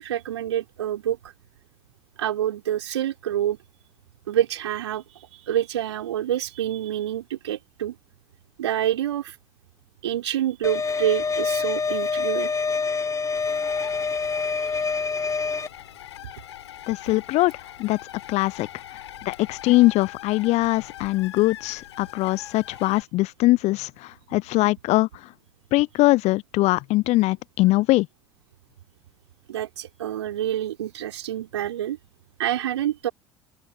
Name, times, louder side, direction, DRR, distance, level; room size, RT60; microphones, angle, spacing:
voice 1, 0.0-1.3 2.2-3.6 4.3-7.9 8.6-9.4 10.0-12.5 14.6-14.8 22.8-23.0 29.5-32.0 32.4-33.1, right 11 dB, 75° right, 3.9 m, -27 dB
sound 1, 10.6-15.7, left 5 dB, 20° left, 2.7 m, -26 dB
sound 2, 13.3-23.0, left 12 dB, 75° left, 6.9 m, -42 dB
voice 2, 16.9-17.5 17.8-18.0 18.3-18.7 19.2-25.1 25.7-28.1, left 19 dB, 50° left, 0.6 m, -21 dB
open air
figure-of-eight pair, 60°, 15 cm